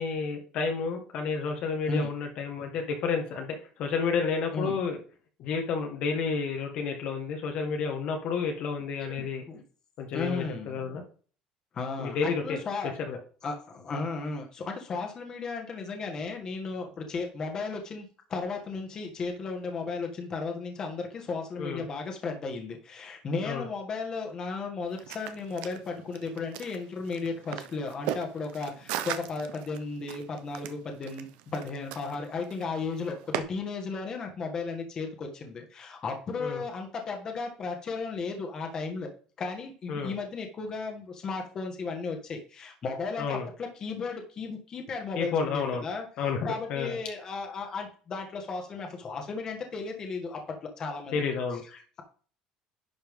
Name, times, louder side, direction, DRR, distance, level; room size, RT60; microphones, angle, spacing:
voice 1, 0.0-5.0 5.4-9.4 10.0-11.0 12.0-12.6 13.1-13.2 21.6-21.9 23.4-23.7 36.4-36.6 39.9-40.1 43.2-43.5 45.1-45.8 46.2-46.4 46.7-47.0 51.1-51.6, left 5 dB, 55° left, 3 dB, 1.5 m, -30 dB
voice 2, 9.1-9.6 10.1-10.8 11.7-12.9 13.4-39.1 39.4-46.0 46.5-51.2 51.7-52.0, left 4 dB, 30° left, 3 dB, 1.6 m, -35 dB
sound 1, 24.9-33.4, right 12 dB, 80° right, 0.8 m, -39 dB
11.0 x 5.6 x 3.7 m, 0.42 s
cardioid pair, 160°, 2 cm